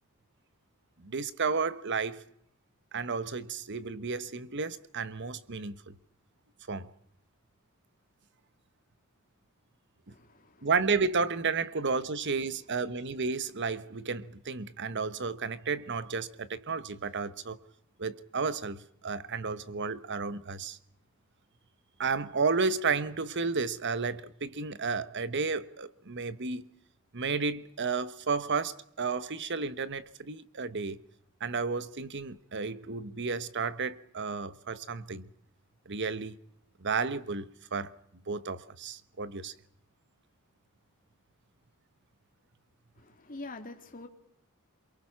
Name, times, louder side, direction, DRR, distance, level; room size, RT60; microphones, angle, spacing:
voice 1, 1.0-2.2 2.9-5.9 6.7-6.9 10.1-10.2 10.6-17.6 18.0-20.8 22.0-26.7 27.1-31.0 31.4-35.3 35.9-36.4 36.8-38.0 38.3-39.5, right 4 dB, 55° right, 1.2 m, -32 dB
voice 2, 10.1-10.7 43.0-44.1, left 2 dB, 40° left, 2.5 m, -45 dB
28.0 x 23.0 x 5.9 m
head